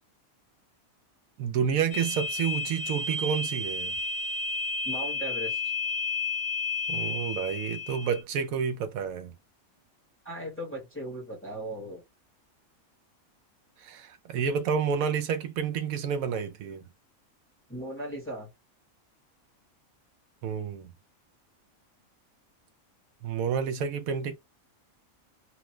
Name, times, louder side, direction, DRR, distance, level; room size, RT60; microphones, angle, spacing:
voice 1, 1.4-4.0 6.9-9.3 13.8-16.9 20.4-20.9 23.2-24.3, right 7 dB, 85° right, 1.0 m, -29 dB
sound 1, 1.9-8.2, left 4 dB, 60° left, 0.9 m, -32 dB
voice 2, 4.8-5.7 10.2-12.0 17.7-18.5, right 1 dB, 10° left, 0.9 m, -37 dB
3.0 x 2.1 x 3.1 m
omnidirectional pair, 1.4 m